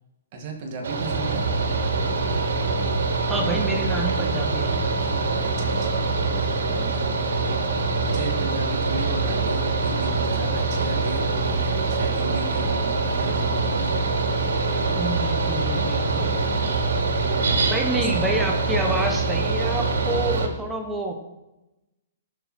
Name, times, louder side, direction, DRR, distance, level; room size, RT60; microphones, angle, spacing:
voice 1, 0.3-1.4 5.4-6.0 6.6-7.6 8.0-13.9 17.9-18.1, right 3 dB, 30° right, 2 dB, 2.2 m, -35 dB
Mechanical fan, 0.8-20.5, right 3 dB, 90° right, 2.9 m, -24 dB
voice 2, 3.3-4.8 14.9-16.4 17.7-21.1, right 1 dB, 5° right, 1 dB, 1.1 m, -28 dB
17.5 x 7.4 x 4.5 m, 0.99 s
hypercardioid pair, 180°, 0 cm